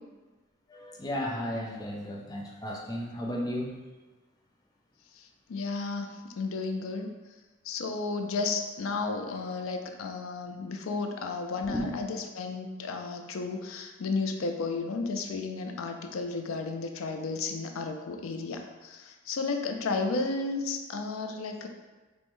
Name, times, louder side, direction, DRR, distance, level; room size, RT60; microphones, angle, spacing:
voice 1, 0.7-3.8 11.7-11.9, equal, 20° left, -2 dB, 0.5 m, -34 dB
voice 2, 5.2-7.1 7.6-21.7, left 3 dB, 80° left, 5 dB, 0.4 m, -33 dB
5.1 x 2.1 x 3.1 m, 1.2 s
head